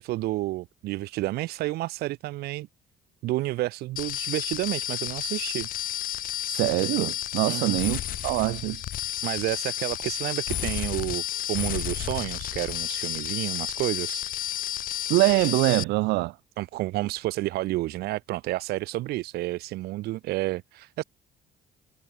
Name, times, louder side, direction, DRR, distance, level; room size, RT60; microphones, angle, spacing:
voice 1, 0.0-2.7 3.2-5.7 7.5-7.8 9.2-11.2 11.5-14.2 16.6-21.0, right 17 dB, 70° right, 0.4 m, -30 dB
sound 1, 4.0-15.8, left 12 dB, 55° left, 0.7 m, -31 dB
voice 2, 6.5-8.8 15.1-16.3, right 21 dB, 90° right, 0.9 m, -24 dB
cardioid pair, 110°, 17 cm